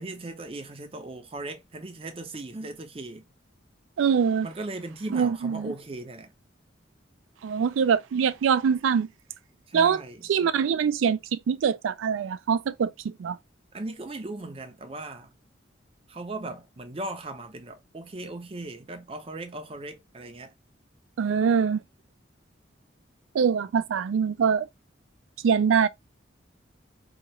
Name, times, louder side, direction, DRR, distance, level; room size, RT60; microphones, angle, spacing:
voice 1, 0.0-3.2 4.4-6.3 9.7-10.2 13.7-15.3 16.1-20.5, right 2 dB, 30° right, 0.5 m, -38 dB
voice 2, 4.0-4.5 5.1-5.7 7.4-9.1 9.7-10.0 10.3-13.4 21.2-21.8 23.3-24.7 25.4-25.9, right 6 dB, 90° right, 0.3 m, -24 dB
2.8 x 2.3 x 3.0 m
head